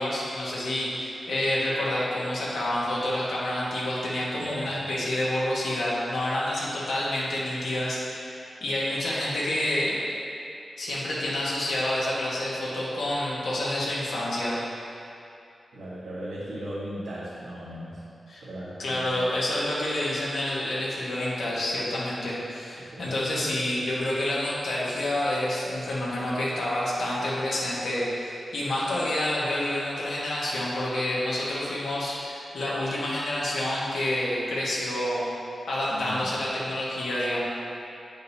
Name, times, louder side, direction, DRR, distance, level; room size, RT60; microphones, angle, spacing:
voice 1, 0.0-10.0 10.8-14.6 18.3-18.4 18.8-35.3 35.7-37.4, left 1 dB, 75° left, -7 dB, 1.4 m, -28 dB
voice 2, 4.3-4.8 15.7-18.0 18.4-19.2 22.8-23.1 35.9-36.3, equal, 85° right, -12 dB, 1.4 m, -38 dB
8.2 x 5.2 x 2.8 m, 2.6 s
wide cardioid pair, 175°, 0 cm